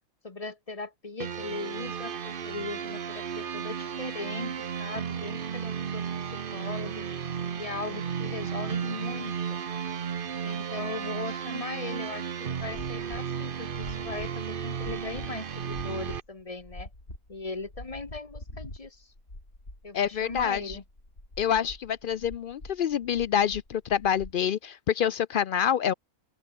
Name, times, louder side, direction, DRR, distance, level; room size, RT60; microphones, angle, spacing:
voice 1, 0.2-6.0 6.3-7.1 7.6-9.6 10.4-16.9 17.3-19.1 19.8-20.8, left 3 dB, 25° left, 1.3 m, -39 dB
sound 1, 1.2-16.2, right 7 dB, 45° right, 0.9 m, -34 dB
sound 2, 12.7-24.4, left 1 dB, 45° left, 7.2 m, -45 dB
voice 2, 19.9-20.8 21.4-25.9, left 8 dB, 75° left, 0.4 m, -27 dB
open air
omnidirectional pair, 1.5 m